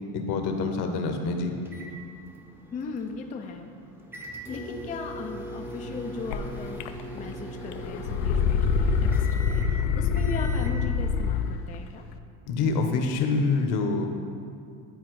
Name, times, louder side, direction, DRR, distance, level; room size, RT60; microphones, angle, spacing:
voice 1, 0.1-1.5 12.5-14.1, left 4 dB, 65° left, 4 dB, 1.0 m, -26 dB
sound 1, 1.6-10.8, equal, 5° right, 0.7 m, -40 dB
voice 2, 2.7-3.7 4.5-12.1, left 4 dB, 20° left, 3 dB, 0.3 m, -38 dB
sound 2, 6.3-6.4 6.8-7.3 7.6-11.6, left 6 dB, 90° left, 0.5 m, -25 dB
11.0 x 4.1 x 3.1 m, 2.3 s
supercardioid pair, 105°, 44 cm